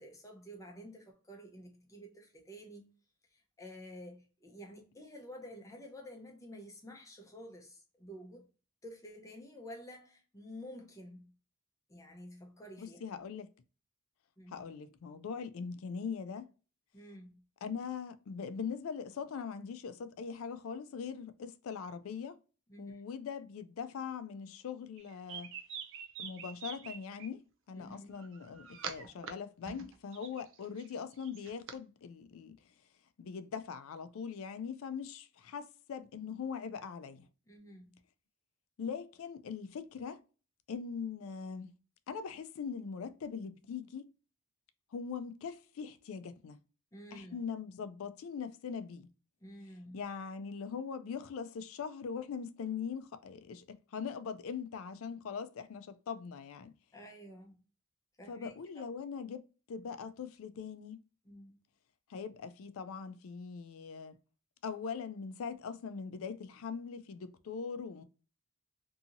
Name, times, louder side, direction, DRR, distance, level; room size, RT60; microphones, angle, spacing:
voice 1, 0.0-2.9 3.3-8.5 8.8-11.3 11.9-13.0 14.4-14.6 16.9-17.4 22.7-23.0 27.7-28.1 37.5-38.0 46.9-47.4 49.4-50.0 56.9-57.6 58.2-58.8 61.2-61.6, equal, 15° left, 0.5 m, -50 dB
voice 2, 12.8-13.5 14.5-16.5 17.6-22.4 22.8-25.5 26.2-32.6 33.2-37.3 38.8-40.2 40.7-41.7 42.1-44.1 44.9-46.6 47.1-49.1 49.9-56.7 58.3-61.0 62.1-64.2 64.6-68.0, left 6 dB, 70° left, 0.4 m, -41 dB
sound 1, 25.0-27.3 28.1-29.3 29.6-31.8, right 6 dB, 60° right, 0.4 m, -45 dB
2.7 x 2.7 x 2.4 m
head